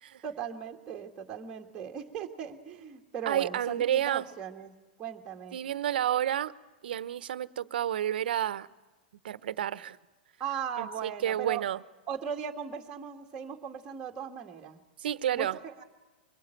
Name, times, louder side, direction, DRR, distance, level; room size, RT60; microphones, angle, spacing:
voice 1, 0.2-4.7 5.0-5.6 10.4-11.6 12.1-14.8 15.3-15.8, right 8 dB, 15° right, 1.8 m, -38 dB
voice 2, 3.3-4.3 5.5-6.5 6.8-8.7 9.2-10.0 10.8-11.8 15.0-15.6, right 11 dB, 75° right, 1.0 m, -30 dB
24.0 x 21.5 x 9.1 m
supercardioid pair, 160°, 5 cm